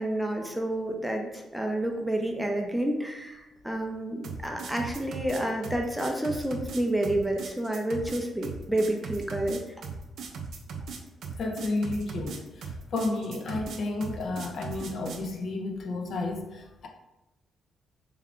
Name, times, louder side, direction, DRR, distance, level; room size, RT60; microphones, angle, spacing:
voice 1, 0.0-9.6, right 1 dB, 5° right, 0.5 m, -29 dB
sound 1, 4.2-15.3, right 5 dB, 70° right, 0.4 m, -38 dB
voice 2, 11.4-16.9, left 2 dB, 55° left, 0.5 m, -32 dB
3.4 x 2.2 x 3.6 m
cardioid pair, 110°, 0 cm